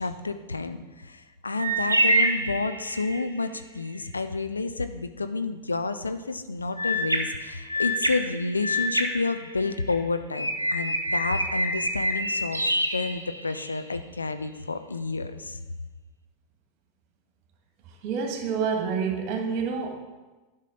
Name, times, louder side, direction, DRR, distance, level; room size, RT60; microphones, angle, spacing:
voice 1, 0.0-12.6 12.9-15.6, left 3 dB, 80° left, 10 dB, 0.5 m, -30 dB
sound 1, 1.6-3.3 6.8-9.9 10.3-13.8, equal, 90° right, 0.7 m, -27 dB
voice 2, 18.0-20.0, right 6 dB, 45° right, 3 dB, 1.5 m, -28 dB
11.5 x 5.6 x 3.8 m, 1.2 s
figure-of-eight pair, 90°, 0 cm